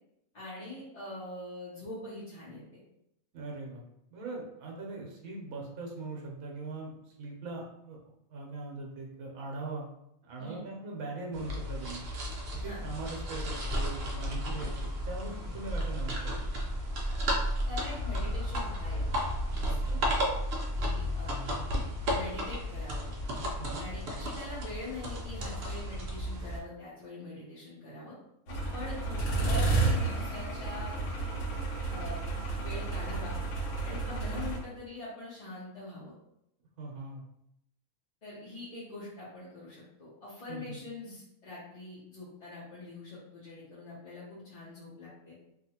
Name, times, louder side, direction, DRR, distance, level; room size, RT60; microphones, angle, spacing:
voice 1, 0.3-2.6 10.4-10.6 12.6-12.8 14.5-14.6 17.7-19.1 19.5-19.7 20.7-21.4 22.1-23.1 23.8-28.1 28.7-31.0 31.9-33.3 33.8-36.1 38.2-45.3, left 2 dB, 40° left, -9 dB, 0.7 m, -43 dB
voice 2, 3.3-3.8 4.1-6.9 7.2-9.9 10.2-12.0 12.5-16.4 19.7-20.0 23.5-23.8 36.8-37.2 40.5-40.8, right 3 dB, 75° right, -1 dB, 1.1 m, -41 dB
sound 1, 11.3-26.6, equal, 60° right, 0.7 m, -33 dB
sound 2, 28.5-34.6, right 3 dB, 75° left, 1.1 m, -31 dB
2.8 x 2.4 x 2.8 m, 0.79 s
omnidirectional pair, 1.5 m